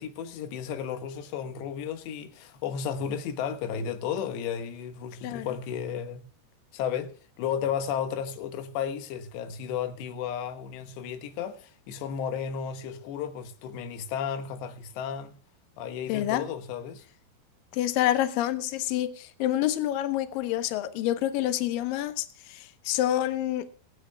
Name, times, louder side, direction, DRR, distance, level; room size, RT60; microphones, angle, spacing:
voice 1, 0.0-6.2 6.7-15.3 15.8-17.0, left 8 dB, 90° left, 3.4 m, -33 dB
voice 2, 16.1-16.4 17.7-23.7, left 13 dB, 70° left, 2.3 m, -27 dB
25.0 x 9.9 x 2.2 m
omnidirectional pair, 4.8 m